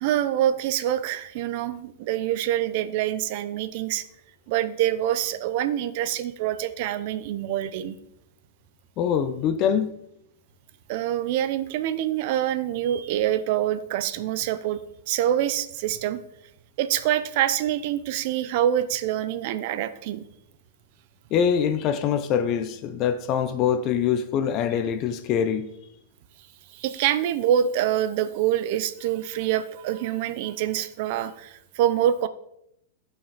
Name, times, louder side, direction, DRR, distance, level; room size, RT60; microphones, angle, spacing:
voice 1, 0.0-4.0 4.5-8.0 10.9-14.8 15.1-16.2 16.8-20.3 26.7-32.3, right 11 dB, 50° right, 0.7 m, -25 dB
voice 2, 9.0-10.0 21.3-25.7, left 8 dB, 35° left, 0.6 m, -24 dB
13.0 x 5.9 x 4.1 m
supercardioid pair, 155°, 0 cm